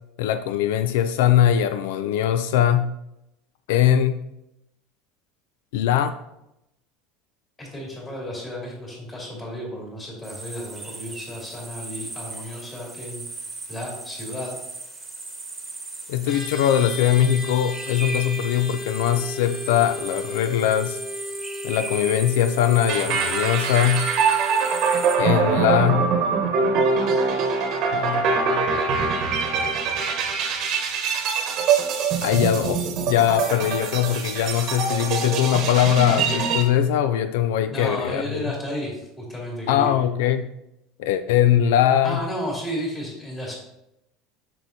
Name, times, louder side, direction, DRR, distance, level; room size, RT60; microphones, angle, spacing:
voice 1, 0.2-2.9 3.7-4.2 5.7-6.1 16.1-21.0 21.6-24.1 25.2-26.1 27.9-28.8 32.2-38.5 39.7-40.5 41.0-42.2, left 10 dB, 85° left, 11 dB, 0.3 m, -21 dB
voice 2, 7.6-13.2 13.7-14.6 37.7-39.9 42.0-43.5, equal, 15° left, -3 dB, 2.4 m, -33 dB
sound 1, 10.2-25.2, right 3 dB, 10° right, 1.3 m, -37 dB
sound 2, 16.2-27.7, left 1 dB, 50° left, 2.0 m, -37 dB
sound 3, 22.9-36.6, right 5 dB, 45° right, 1.0 m, -23 dB
7.5 x 6.1 x 2.7 m, 0.86 s
cardioid pair, 155°, 0 cm